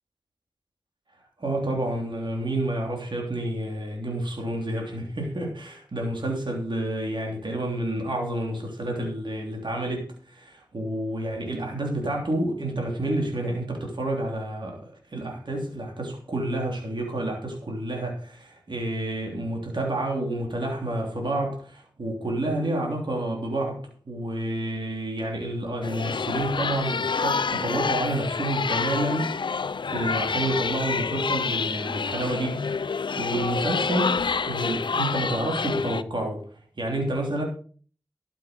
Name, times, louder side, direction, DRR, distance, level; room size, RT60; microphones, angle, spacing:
voice 1, 1.4-29.6 29.9-36.4 36.8-37.4, right 1 dB, 75° right, 3.2 m, -29 dB
sound 1, 25.8-36.0, left 5 dB, 80° left, 0.5 m, -28 dB
12.5 x 7.7 x 5.2 m
cardioid pair, 40°, 8 cm